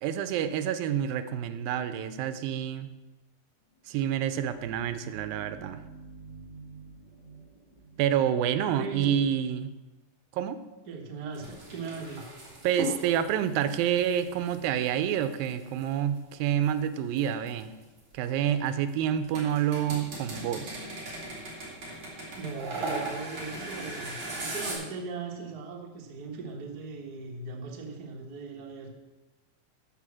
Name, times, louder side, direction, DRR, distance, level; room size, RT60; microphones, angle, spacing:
voice 1, 0.0-2.9 3.9-5.8 8.0-9.7 10.3-10.6 12.6-17.7 18.1-20.8, right 9 dB, 85° right, 11 dB, 2.4 m, -28 dB
sound 1, 3.7-9.3, right 4 dB, 20° left, 1.3 m, -50 dB
voice 2, 8.7-9.3 10.9-12.2 22.4-28.9, right 4 dB, 50° right, 0 dB, 1.1 m, -39 dB
sound 2, 11.3-15.9 16.6-18.9 19.2-24.7, right 2 dB, 35° right, 3.9 m, -38 dB
12.0 x 5.2 x 7.4 m, 1.1 s
omnidirectional pair, 4.1 m